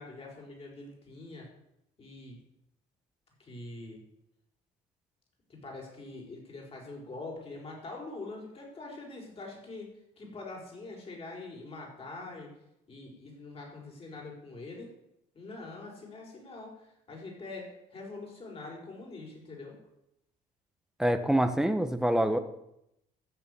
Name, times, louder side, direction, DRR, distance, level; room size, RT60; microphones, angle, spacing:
voice 1, 0.0-1.5 2.0-2.4 3.4-4.0 5.5-12.5 12.9-14.9 15.3-19.8, left 2 dB, 35° left, -1 dB, 5.7 m, -44 dB
voice 2, 21.0-22.4, right 1 dB, 5° right, 9 dB, 1.3 m, -26 dB
14.5 x 6.9 x 8.5 m, 0.83 s
cardioid pair, 110°, 17 cm